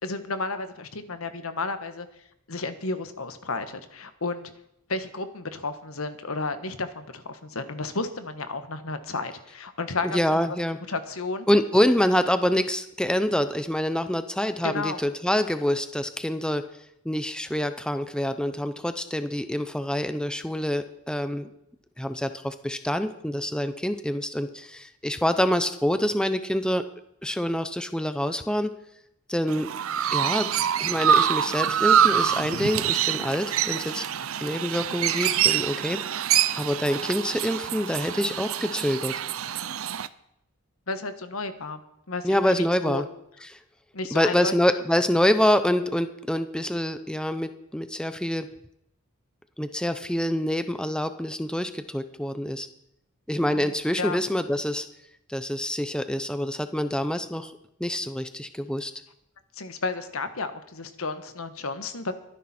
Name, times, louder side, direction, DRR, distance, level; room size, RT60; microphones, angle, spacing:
voice 1, 0.0-2.1 2.5-4.5 4.9-10.6 10.9-11.5 14.6-15.0 40.9-41.8 42.1-43.0 43.9-44.5 53.5-54.2 59.6-62.1, left 3 dB, 85° left, 9 dB, 1.4 m, -32 dB
voice 2, 10.0-10.8 11.5-16.6 17.0-21.5 22.0-26.8 27.2-28.7 29.3-29.7 30.1-30.5 30.8-34.0 34.4-36.0 36.6-39.1 42.2-43.1 43.5-43.6 44.1-48.5 49.6-52.7 53.3-54.9 55.3-57.5 57.8-58.9, left 1 dB, 5° left, 10 dB, 0.6 m, -26 dB
Chirp tweet, 29.5-40.1, right 9 dB, 80° right, 0.6 m, -25 dB
22.5 x 10.5 x 4.4 m, 0.77 s
head